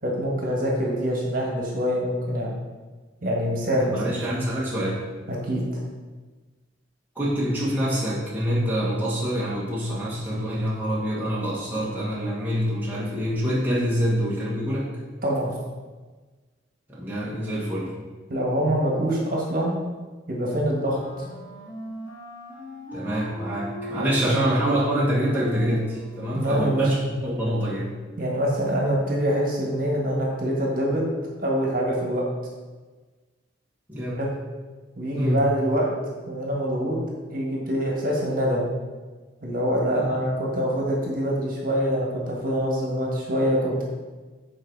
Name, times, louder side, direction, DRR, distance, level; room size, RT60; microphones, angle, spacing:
voice 1, 0.0-2.5 3.2-4.0 5.3-5.6 15.2-15.5 18.3-19.7 20.3-21.0 24.0-24.3 26.3-26.8 28.2-31.0 31.4-32.2 34.2-34.3 34.9-35.9 36.3-37.0 37.3-38.6 39.4-43.8, equal, 45° right, -2 dB, 1.6 m, -25 dB
voice 2, 3.9-5.1 7.1-14.9 16.9-17.9 22.9-27.9 33.9-34.2 35.1-35.5 40.0-40.2, equal, 10° right, -8 dB, 1.4 m, -26 dB
Wind instrument woodwind instrument, 20.8-27.0, equal, 60° left, 2.6 m, -39 dB
7.9 x 4.7 x 4.7 m, 1.3 s
head